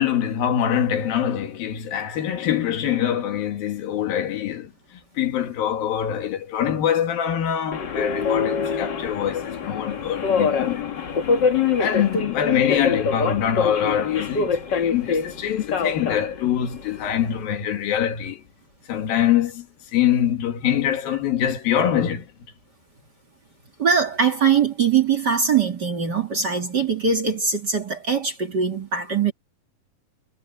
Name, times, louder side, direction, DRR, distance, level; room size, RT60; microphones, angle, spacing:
voice 1, 0.0-4.7 5.2-10.9 11.8-18.4 18.9-19.7 19.9-22.3, left 10 dB, 85° left, 3.8 m, -24 dB
Subway metro underground, 7.7-17.4, left 5 dB, 45° left, 1.6 m, -25 dB
voice 2, 23.8-29.3, right 6 dB, 35° right, 2.3 m, -21 dB
omnidirectional pair, 4.0 m